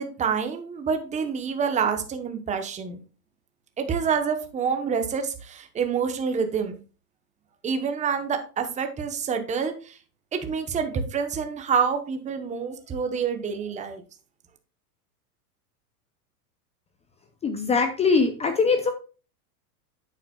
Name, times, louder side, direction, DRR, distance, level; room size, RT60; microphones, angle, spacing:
voice 1, 0.0-3.0 3.8-6.8 7.6-10.0 10.3-14.0, right 6 dB, 15° right, 6 dB, 0.9 m, -27 dB
voice 2, 17.4-18.9, left 4 dB, 15° left, 7 dB, 0.5 m, -22 dB
8.8 x 7.3 x 2.3 m, 0.35 s
supercardioid pair, 130°, 46 cm